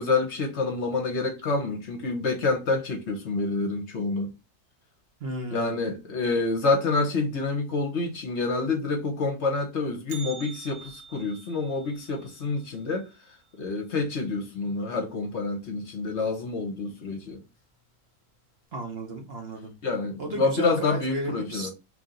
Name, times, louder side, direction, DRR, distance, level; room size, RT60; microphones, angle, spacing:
voice 1, 0.0-4.3 5.5-13.1 13.6-17.4 19.8-21.7, left 3 dB, 55° left, 1.0 m, -27 dB
voice 2, 5.2-5.9 18.7-19.7 20.2-21.7, right 1 dB, 50° right, 0.9 m, -34 dB
Bell, 10.1-14.2 14.5-14.6 15.1-15.2 16.0-16.1 16.8-17.1 17.5-17.6, right 6 dB, 90° right, 1.4 m, -47 dB
3.0 x 2.8 x 3.7 m
omnidirectional pair, 1.5 m